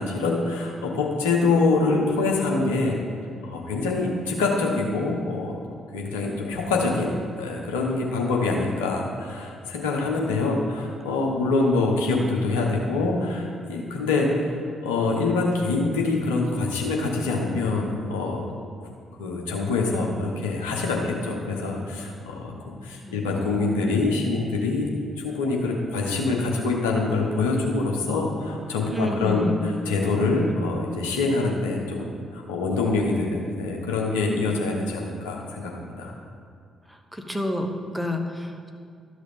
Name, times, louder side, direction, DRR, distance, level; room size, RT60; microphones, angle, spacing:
voice 1, 0.0-2.9 3.4-5.5 5.9-7.1 7.4-14.5 14.8-18.5 19.2-24.9 25.2-36.1, left 3 dB, 75° left, 0 dB, 1.1 m, -25 dB
voice 2, 28.9-29.7 36.9-38.7, left 1 dB, 5° right, 3 dB, 1.2 m, -29 dB
12.5 x 6.3 x 3.7 m, 2.3 s
figure-of-eight pair, 40°, 0 cm